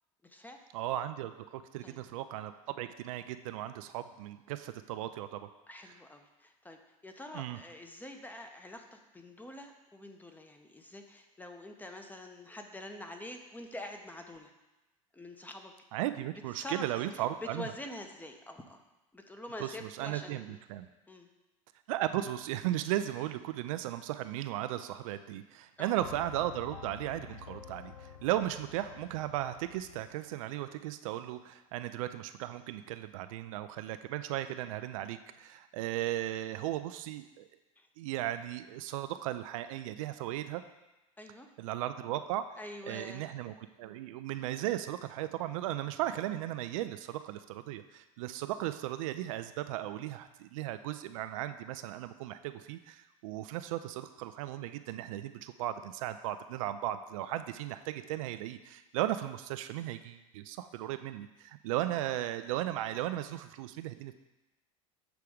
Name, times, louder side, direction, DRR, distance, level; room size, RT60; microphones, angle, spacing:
voice 1, 0.2-0.6 1.8-2.0 5.7-14.5 15.1-15.7 16.5-18.8 19.1-20.5 21.1-21.3 25.8-26.0 37.8-37.9 41.2-41.5 42.6-43.3, left 1 dB, 10° left, 4 dB, 0.8 m, -46 dB
voice 2, 0.7-5.5 7.3-7.6 15.9-17.7 19.6-20.9 21.9-37.4 38.0-40.6 41.6-42.5 42.9-64.1, right 13 dB, 70° right, 10 dB, 0.4 m, -36 dB
sound 1, 26.0-30.2, left 7 dB, 90° left, 0.6 m, -49 dB
7.1 x 3.3 x 4.9 m, 1.0 s
hypercardioid pair, 85°, 18 cm